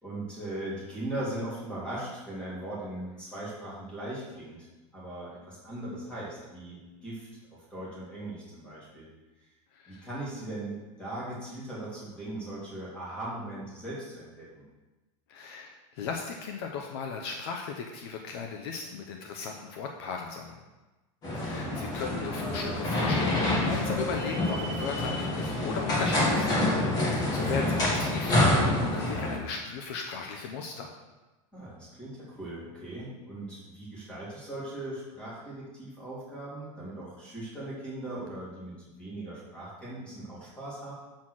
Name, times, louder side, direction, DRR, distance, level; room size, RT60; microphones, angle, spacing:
voice 1, 0.0-4.7 4.9-9.1 9.9-14.6 21.5-22.1 27.1-27.5 31.5-40.9, right 1 dB, 5° left, -7 dB, 2.5 m, -39 dB
voice 2, 9.7-10.1 15.3-20.6 21.4-26.6 27.0-30.9, left 5 dB, 50° left, 3 dB, 0.8 m, -36 dB
sound 1, 21.2-29.4, left 1 dB, 25° left, 1.9 m, -27 dB
6.3 x 5.7 x 6.4 m, 1.1 s
supercardioid pair, 175°, 16 cm